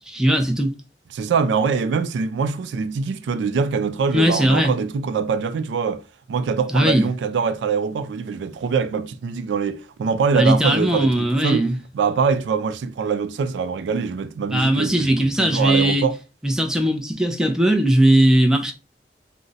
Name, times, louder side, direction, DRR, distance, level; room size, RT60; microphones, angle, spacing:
voice 1, 0.1-0.7 4.1-4.7 6.7-7.1 10.3-11.8 14.5-16.0 16.4-18.7, right 1 dB, 5° right, 0.4 m, -18 dB
voice 2, 1.1-6.0 6.3-11.7 11.9-16.2, right 5 dB, 85° right, 0.3 m, -23 dB
2.4 x 2.1 x 3.9 m
head